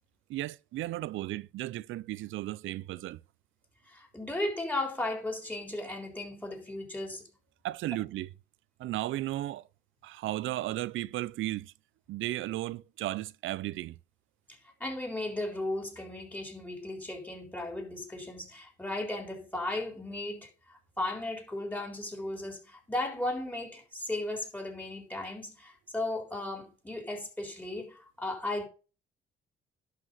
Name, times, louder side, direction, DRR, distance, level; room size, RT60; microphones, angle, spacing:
voice 1, 0.3-3.2 7.6-8.3 8.8-9.6 10.0-11.7 12.1-14.0, right 15 dB, 80° right, 0.5 m, -35 dB
voice 2, 3.9-7.2 14.8-28.7, left 2 dB, 10° left, 3.8 m, -36 dB
11.5 x 5.3 x 5.4 m
cardioid pair, 90°, 20 cm